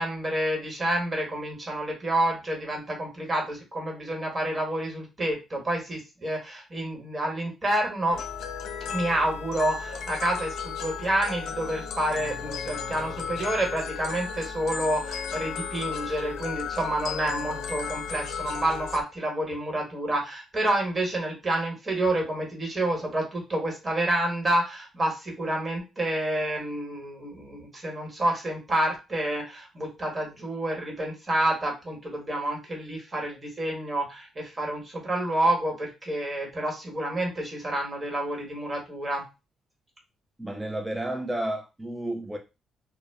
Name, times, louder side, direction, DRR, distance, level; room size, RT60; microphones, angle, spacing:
voice 1, 0.0-8.2 8.9-39.2, right 1 dB, 30° right, 1.2 m, -29 dB
sound 1, 8.1-19.0, left 6 dB, 75° left, 0.4 m, -34 dB
voice 2, 40.4-42.4, right 1 dB, 10° right, 0.3 m, -31 dB
2.1 x 2.0 x 3.3 m
cardioid pair, 90°, 0 cm